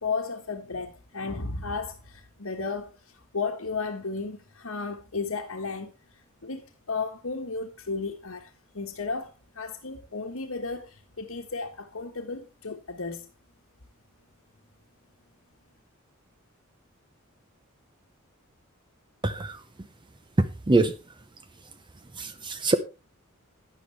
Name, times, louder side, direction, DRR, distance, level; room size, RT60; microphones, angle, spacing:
voice 1, 0.0-13.3, left 4 dB, 75° left, 1.4 m, -34 dB
voice 2, 19.2-19.6 20.4-20.9 22.2-22.7, right 2 dB, 20° right, 0.7 m, -24 dB
12.0 x 9.6 x 3.4 m
head